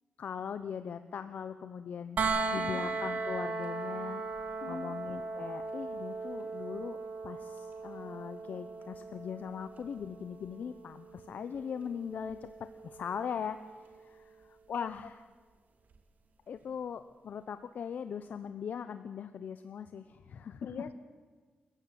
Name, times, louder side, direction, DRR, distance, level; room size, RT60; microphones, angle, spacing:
voice 1, 0.2-2.2 2.5-4.2 4.7-7.0 7.2-12.5 12.8-15.2 16.5-20.7, left 7 dB, 60° left, 11 dB, 1.0 m, -40 dB
sound 1, 2.2-14.0 15.9-16.0, right 4 dB, 55° right, 2.5 m, -38 dB
voice 2, 2.6-2.9 4.6-4.9 14.7-14.9 20.6-20.9, left 6 dB, 75° left, 10 dB, 2.1 m, -42 dB
29.0 x 15.0 x 9.5 m, 1.5 s
wide cardioid pair, 140°, 3 cm